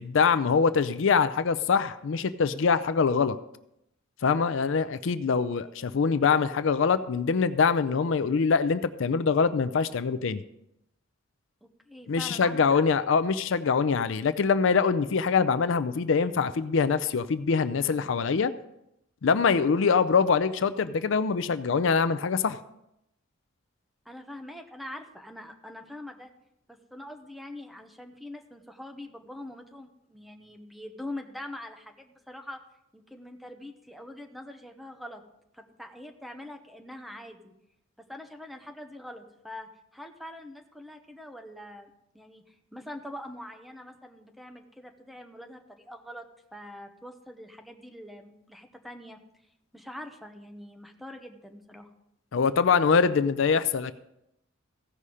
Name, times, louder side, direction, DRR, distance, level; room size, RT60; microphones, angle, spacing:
voice 1, 0.0-3.4 4.2-10.4 12.1-18.5 19.2-22.6 52.3-53.9, left 5 dB, 70° left, 13 dB, 0.5 m, -24 dB
voice 2, 11.6-12.8 24.0-26.3 26.7-32.6 32.9-35.2 35.5-37.5 38.0-41.9 42.1-46.2 46.5-49.2 49.7-51.9, left 1 dB, ahead, 4 dB, 0.9 m, -43 dB
15.5 x 5.6 x 4.9 m, 0.82 s
head